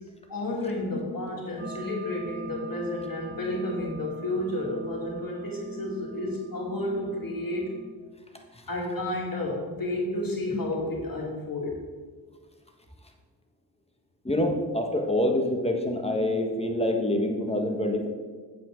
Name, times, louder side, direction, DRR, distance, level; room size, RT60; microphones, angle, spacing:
voice 1, 0.3-7.7 8.7-11.7, left 1 dB, 55° left, -3 dB, 2.4 m, -31 dB
sound 1, 1.6-7.9, right 3 dB, 25° right, 1.8 m, -42 dB
voice 2, 14.2-18.1, left 1 dB, 15° left, 2 dB, 1.5 m, -26 dB
8.8 x 7.6 x 3.8 m, 1.5 s
cardioid pair, 55°, 41 cm